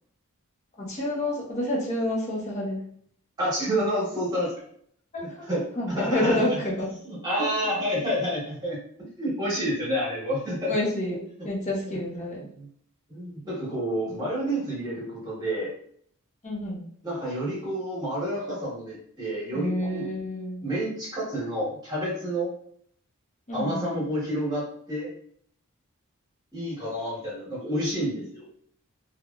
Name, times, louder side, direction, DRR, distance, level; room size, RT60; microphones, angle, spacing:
voice 1, 0.8-2.9 5.1-5.5 5.8-6.9 7.4-7.5 10.7-12.5 16.4-16.8 19.5-20.6 23.5-24.0, left 1 dB, 30° left, -3 dB, 0.8 m, -28 dB
voice 2, 3.4-4.5 5.2-6.6 7.0-8.8 9.2-10.7 11.8-12.0 12.5-12.7 13.1-15.7 17.0-20.1 20.6-22.5 23.5-25.1 26.5-28.5, equal, 20° right, -5 dB, 1.3 m, -29 dB
3.3 x 2.2 x 2.4 m, 0.62 s
head